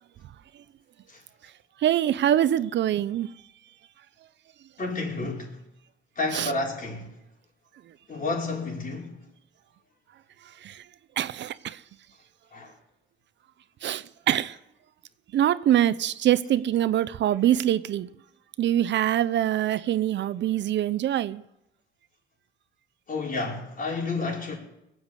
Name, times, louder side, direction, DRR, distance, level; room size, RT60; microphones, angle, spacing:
voice 1, 1.8-3.3 6.3-6.5 10.6-10.8 11.2-11.8 13.8-14.6 15.3-18.1 18.6-21.4, right 11 dB, 65° right, 0.7 m, -24 dB
voice 2, 4.8-5.6 6.2-7.1 8.1-9.1 12.5-12.7 23.1-24.5, left 3 dB, 45° left, 5.2 m, -30 dB
20.0 x 8.1 x 8.2 m
cardioid pair, 90°, 20 cm